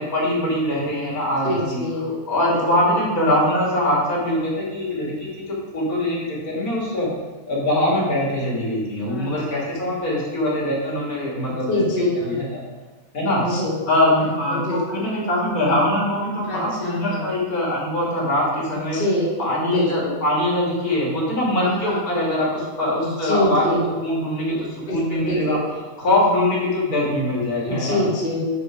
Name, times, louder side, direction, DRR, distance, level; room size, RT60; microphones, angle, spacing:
voice 1, 0.0-1.8 2.3-7.1 7.5-12.6 13.1-13.4 13.9-19.0 19.4-25.6 26.0-28.1, left 1 dB, 75° left, -5 dB, 3.0 m, -22 dB
voice 2, 1.4-2.1 2.5-2.8 9.1-9.7 10.0-10.2 11.7-12.4 13.4-13.8 14.2-15.1 16.5-17.3 18.9-19.3 19.6-20.2 21.6-22.0 23.2-23.8 24.5-25.6 27.7-28.4, left 1 dB, 40° left, -5 dB, 1.7 m, -26 dB
9.6 x 4.6 x 4.9 m, 1.2 s
omnidirectional pair, 1.5 m